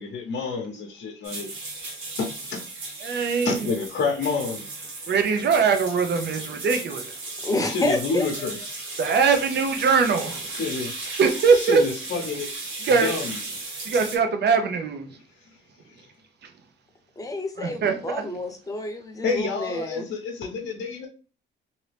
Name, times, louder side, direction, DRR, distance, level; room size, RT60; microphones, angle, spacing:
voice 1, 0.0-1.5 1.8-1.9 2.2-2.6 3.4-4.7 7.7-8.9 10.5-10.9 11.5-12.5 13.0-13.3 19.2-21.1, left 4 dB, 65° left, 0.8 m, -29 dB
sound 1, 1.2-14.2, right 3 dB, 85° right, 1.4 m, -36 dB
voice 2, 3.0-3.7 5.1-7.2 9.0-10.5 11.2-11.8 12.8-13.1 13.8-15.1 16.4-16.5 17.6-18.2, right 5 dB, 60° right, 0.8 m, -22 dB
voice 3, 7.4-8.6 17.2-20.1, left 1 dB, 15° left, 0.8 m, -29 dB
2.8 x 2.7 x 3.3 m
cardioid pair, 90°, 20 cm